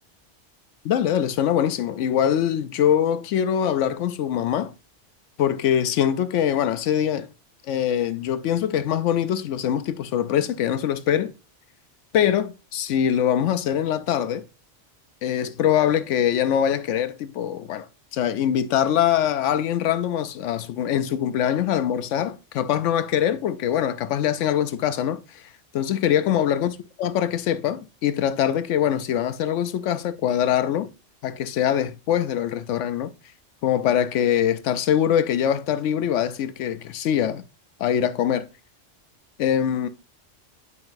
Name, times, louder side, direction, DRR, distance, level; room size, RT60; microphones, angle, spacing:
voice 1, 0.8-4.7 5.4-7.3 7.6-11.3 12.1-14.4 15.2-26.7 27.0-30.9 31.2-33.1 33.6-37.4 37.8-38.5 39.4-39.9, left 9 dB, 80° left, 0.9 m, -23 dB
9.5 x 5.7 x 2.5 m
omnidirectional pair, 1.2 m